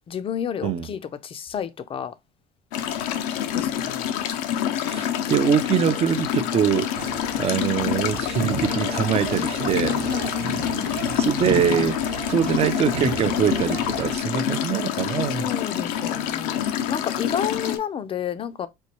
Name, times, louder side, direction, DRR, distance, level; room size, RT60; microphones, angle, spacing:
voice 1, 0.0-2.1 3.5-4.1 9.7-11.0 15.4-18.7, left 9 dB, 30° left, 0.5 m, -31 dB
sound 1, 2.7-17.8, left 10 dB, 90° left, 0.6 m, -27 dB
voice 2, 4.8-6.9 7.4-10.0 10.4-15.5, right 8 dB, 30° right, 0.5 m, -24 dB
sound 2, 6.9-14.2, right 6 dB, 55° right, 0.9 m, -34 dB
4.4 x 2.2 x 2.9 m
supercardioid pair, 115°, 19 cm